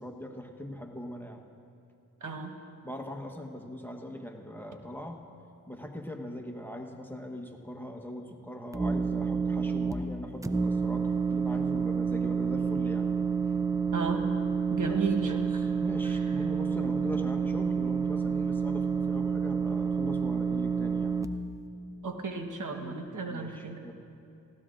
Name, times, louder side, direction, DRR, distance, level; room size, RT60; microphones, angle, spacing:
voice 1, 0.0-1.4 2.8-5.2 5.7-13.1 14.8-21.1 22.8-23.9, left 1 dB, 5° left, 3 dB, 1.1 m, -41 dB
voice 2, 2.2-2.5 13.9-14.3 14.7-15.6 22.0-23.8, right 4 dB, 60° right, 4 dB, 1.2 m, -33 dB
sound 1, 8.7-9.9 10.4-21.2, right 6 dB, 10° right, 0.5 m, -29 dB
18.5 x 16.0 x 2.5 m, 2.6 s
cardioid pair, 70°, 35 cm